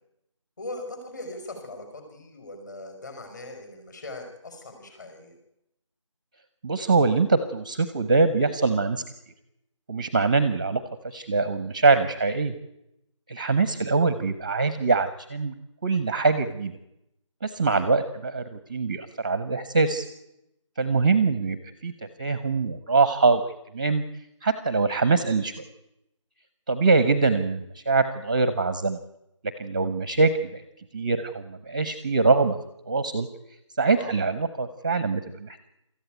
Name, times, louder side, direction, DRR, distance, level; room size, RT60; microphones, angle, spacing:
voice 1, 0.6-5.3 17.6-17.9 33.9-34.1, left 2 dB, 35° left, 6 dB, 5.5 m, -40 dB
voice 2, 6.6-9.0 9.9-12.5 13.3-15.5 15.8-16.7 17.4-20.0 20.8-21.6 21.8-21.9 22.2-23.4 23.7-24.0 24.4-25.5 26.7-29.0 29.6-30.6 30.9-32.6 32.9-33.3 33.8-35.6, right 4 dB, 15° right, 12 dB, 0.7 m, -23 dB
23.5 x 14.0 x 9.1 m, 0.84 s
figure-of-eight pair, 170°, 17 cm